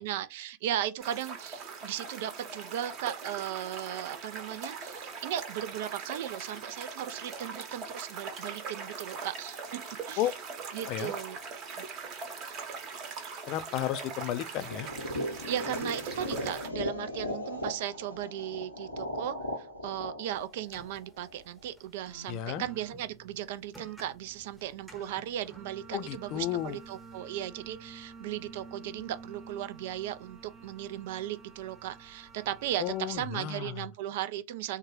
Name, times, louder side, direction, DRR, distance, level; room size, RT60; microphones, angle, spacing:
voice 1, 0.0-9.8 10.1-10.3 10.7-11.4 11.8-11.9 15.5-34.8, right 12 dB, 50° right, 0.4 m, -37 dB
sound 1, 1.0-16.7, right 5 dB, 35° right, 0.9 m, -41 dB
voice 2, 13.5-14.9 22.3-22.6 25.9-26.8 32.8-33.7, left 12 dB, 40° left, 0.4 m, -33 dB
sound 2, 14.7-21.6, left 1 dB, 90° right, 1.0 m, -37 dB
sound 3, 20.3-33.3, right 4 dB, 5° right, 0.9 m, -50 dB
3.7 x 2.2 x 3.0 m
figure-of-eight pair, 90°, 0 cm